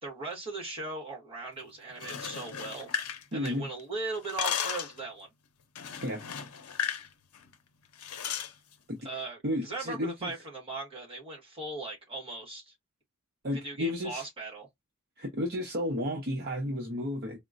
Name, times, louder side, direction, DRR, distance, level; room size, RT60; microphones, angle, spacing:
voice 1, 0.0-2.9 3.3-5.3 9.0-12.7 13.6-14.7, right 3 dB, 25° right, 1.5 m, -38 dB
sound 1, 1.9-3.8 4.1-5.0 5.8-7.1 7.3-7.5 8.0-8.5, left 7 dB, 85° left, 0.7 m, -35 dB
voice 2, 3.3-3.7 6.0-6.2 8.9-9.0 9.4-10.3 13.4-14.3 15.2-17.4, left 1 dB, 45° right, 0.8 m, -32 dB
4.2 x 2.1 x 2.5 m
head